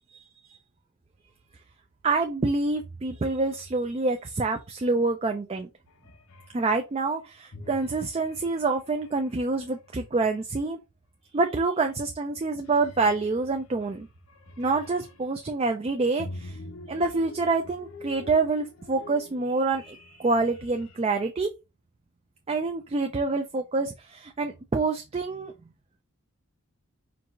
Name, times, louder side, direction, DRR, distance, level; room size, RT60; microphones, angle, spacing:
voice 1, 2.0-5.7 6.5-10.8 11.3-14.1 14.6-16.6 16.9-21.5 22.5-25.5, right 3 dB, 25° right, 0.4 m, -27 dB
sound 1, 5.9-6.7 7.5-10.2 11.8-12.1 12.4-15.4 16.2-21.0, left 2 dB, 70° left, 0.7 m, -46 dB
4.6 x 2.4 x 3.7 m
head